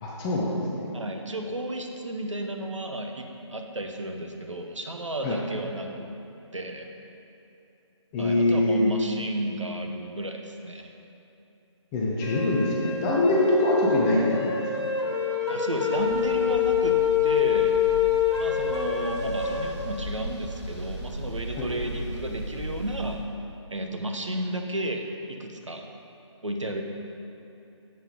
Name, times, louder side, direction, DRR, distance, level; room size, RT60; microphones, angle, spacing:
voice 1, 0.0-0.5 5.2-5.4 8.1-8.9 11.9-14.7 21.6-21.7, left 1 dB, 10° left, -5 dB, 0.5 m, -23 dB
voice 2, 0.9-6.1 6.5-6.9 8.2-10.9 15.5-17.8 18.4-23.2 23.7-25.8 26.4-26.8, right 1 dB, 75° right, 3 dB, 1.1 m, -32 dB
sound 1, 12.2-19.7, left 8 dB, 65° left, 1.7 m, -26 dB
sound 2, 15.9-23.1, right 1 dB, 25° left, 2.3 m, -37 dB
7.7 x 7.6 x 5.2 m, 2.8 s
figure-of-eight pair, 150°, 16 cm